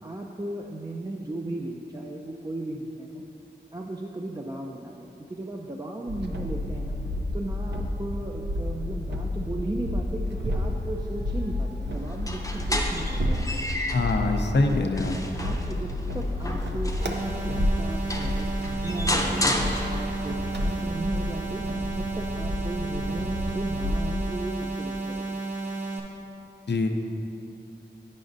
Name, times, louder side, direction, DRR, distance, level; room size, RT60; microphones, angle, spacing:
voice 1, 0.0-3.3 3.7-7.0 7.3-13.8 14.6-14.8 15.4-19.5 19.9-21.7 22.0-25.3, right 2 dB, 20° right, -1 dB, 0.4 m, -36 dB
sound 1, 6.1-24.3, left 1 dB, 75° right, 0.6 m, -30 dB
sound 2, 12.1-14.2 14.7-17.3 17.8-17.9 18.1-20.3, left 1 dB, 20° left, 0.6 m, -31 dB
voice 2, 13.9-15.1 26.7-26.9, left 2 dB, 75° left, 4 dB, 0.5 m, -24 dB
sound 3, 17.0-26.0, right 3 dB, 40° right, 1.0 m, -33 dB
10.5 x 5.0 x 2.6 m, 2.8 s
wide cardioid pair, 50°, 18 cm